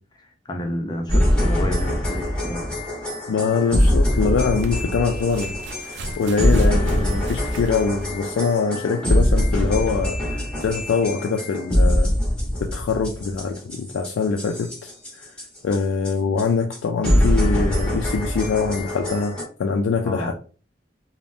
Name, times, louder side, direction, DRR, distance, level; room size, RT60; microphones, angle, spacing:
voice 1, 0.5-2.8 20.0-20.3, left 1 dB, 25° left, 0.5 m, -29 dB
sound 1, 1.1-15.8 16.0-16.1 16.4-16.5 16.7-16.8 17.0-19.4, equal, 5° left, 1.1 m, -23 dB
sound 2, 2.1-2.2 4.2-8.4 9.4-9.5, right 2 dB, 70° right, 0.4 m, -37 dB
voice 2, 3.3-12.2 12.6-14.9 15.2-15.3 15.6-20.3, left 5 dB, 90° left, 0.3 m, -24 dB
3.3 x 2.1 x 2.5 m
head